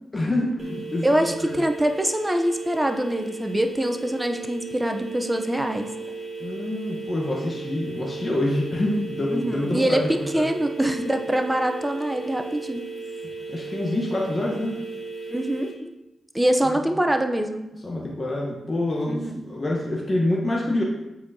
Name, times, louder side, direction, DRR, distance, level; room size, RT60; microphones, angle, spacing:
voice 1, 0.1-1.1 1.4-1.6 6.4-10.4 13.5-14.8 17.8-20.8, left 1 dB, 35° left, -3 dB, 1.2 m, -26 dB
sound 1, 0.6-15.7, right 4 dB, 45° right, 1.5 m, -36 dB
voice 2, 1.0-5.9 9.3-12.9 15.3-15.9 16.3-17.7 19.1-19.5, right 1 dB, 15° right, 6 dB, 0.7 m, -24 dB
7.5 x 4.5 x 2.8 m, 0.98 s
supercardioid pair, 45°, 0 cm